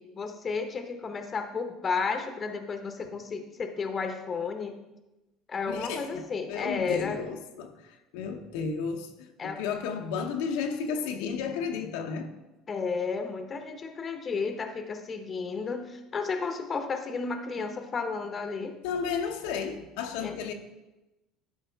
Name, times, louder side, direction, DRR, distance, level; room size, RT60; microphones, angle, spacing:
voice 1, 0.0-4.7 5.5-7.2 9.4-9.6 12.7-18.8 20.2-20.4, left 5 dB, 25° left, 0.7 m, -32 dB
voice 2, 5.7-12.3 18.8-20.5, left 6 dB, 90° left, 0.7 m, -33 dB
11.5 x 4.7 x 3.4 m
cardioid pair, 140°, 0 cm